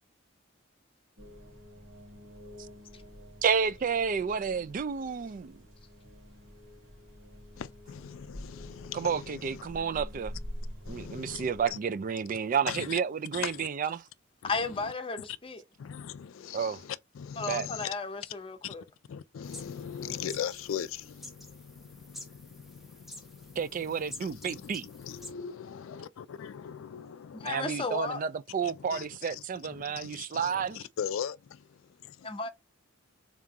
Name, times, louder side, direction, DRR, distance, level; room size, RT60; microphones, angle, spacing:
sound 1, 1.2-11.7, left 1 dB, 75° right, 2.1 m, -46 dB
voice 1, 3.4-5.6 8.9-10.3 10.9-14.0 16.5-16.8 17.5-17.7 23.6-24.9 27.4-30.9, right 6 dB, 40° right, 0.3 m, -31 dB
voice 2, 7.6-9.6 10.9-11.8 12.7-13.0 13.3-13.7 14.4-14.5 15.8-17.9 18.6-18.8 19.1-27.6 28.6-29.4 29.7-31.8, left 8 dB, 75° left, 0.3 m, -40 dB
voice 3, 14.4-15.6 17.4-18.8 27.3-28.2 32.3-32.5, left 3 dB, 25° left, 0.7 m, -34 dB
sound 2, 19.4-25.3, left 1 dB, ahead, 0.8 m, -49 dB
3.7 x 3.6 x 2.8 m
head